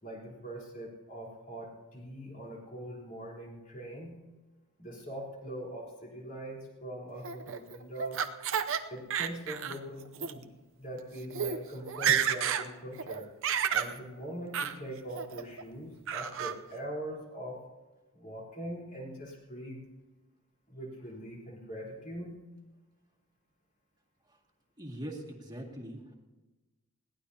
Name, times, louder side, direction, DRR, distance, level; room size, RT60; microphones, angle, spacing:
voice 1, 0.0-4.2 4.8-8.2 8.9-10.5 10.8-13.3 13.7-17.6 18.1-19.8 20.7-22.4, right 1 dB, 40° left, -3 dB, 3.9 m, -42 dB
Laughter, 7.2-8.8 9.1-9.8 10.1-10.3 11.0-11.1 11.3-11.6 11.9-12.7 13.0-13.9 14.5-14.7 15.2-15.6 16.1-16.5, right 8 dB, 65° right, 0.7 m, -30 dB
voice 2, 24.8-26.0, right 1 dB, 20° right, 0 dB, 2.1 m, -42 dB
21.5 x 17.0 x 2.8 m, 1.2 s
head